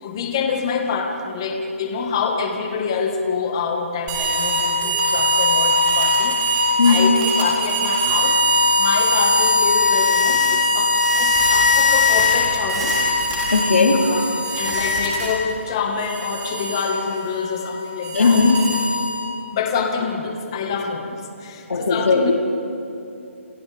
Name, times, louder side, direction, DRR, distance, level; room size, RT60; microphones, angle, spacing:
voice 1, 0.0-13.0 13.9-18.4 19.5-22.3, left 5 dB, 20° left, 3 dB, 1.5 m, -26 dB
sound 1, 4.1-15.5 16.0-19.3, left 2 dB, 15° right, 3.5 m, -20 dB
voice 2, 6.8-7.2 13.5-14.1 18.1-18.6 21.7-22.3, left 4 dB, 75° left, 0 dB, 3.6 m, -16 dB
29.0 x 26.5 x 3.5 m, 2.8 s
hypercardioid pair, 180°, 7 cm